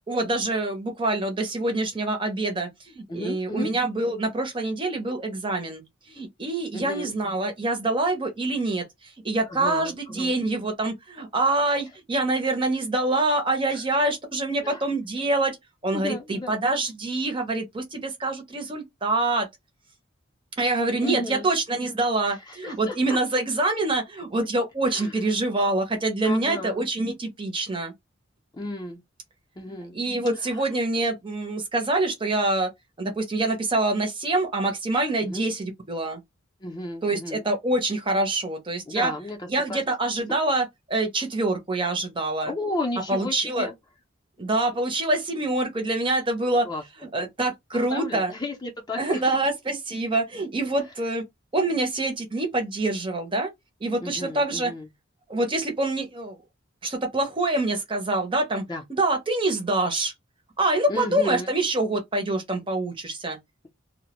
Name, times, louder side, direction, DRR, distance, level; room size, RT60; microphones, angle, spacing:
voice 1, 0.1-15.6 15.8-19.5 20.6-27.9 29.9-32.7 33.0-36.2 37.0-39.1 39.5-42.5 43.1-43.7 44.4-46.7 47.0-48.3 49.0-51.2 51.5-53.5 53.8-54.7 55.3-56.4 56.8-58.6 58.9-60.1 60.6-63.4, right 2 dB, 25° right, 0.6 m, -25 dB
voice 2, 3.1-3.7 6.7-7.1 9.5-10.3 13.7-13.8 14.6-14.9 15.9-16.6 21.0-21.5 22.2-23.2 24.9-25.1 26.2-26.8 28.5-29.0 29.6-29.9 30.4-30.6 35.2-35.5 36.6-37.4 38.9-39.8 42.4-43.7 46.6-46.8 47.7-49.2 54.0-54.9 58.7-58.8 60.9-61.5, left 2 dB, 20° left, 0.5 m, -33 dB
2.1 x 2.0 x 2.9 m
head